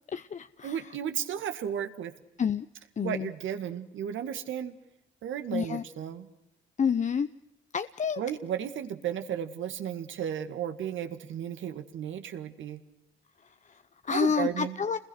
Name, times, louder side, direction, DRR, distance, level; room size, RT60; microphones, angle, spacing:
voice 1, 0.1-0.9 2.4-2.7 3.0-3.3 5.5-5.8 6.8-7.3 7.7-8.2 13.4-15.0, left 6 dB, 40° left, 11 dB, 0.8 m, -29 dB
voice 2, 0.6-2.1 3.0-4.7 5.2-6.3 8.2-12.8 14.1-14.8, right 9 dB, 75° right, 8 dB, 2.1 m, -34 dB
28.5 x 21.0 x 6.4 m, 0.87 s
cardioid pair, 90°, 20 cm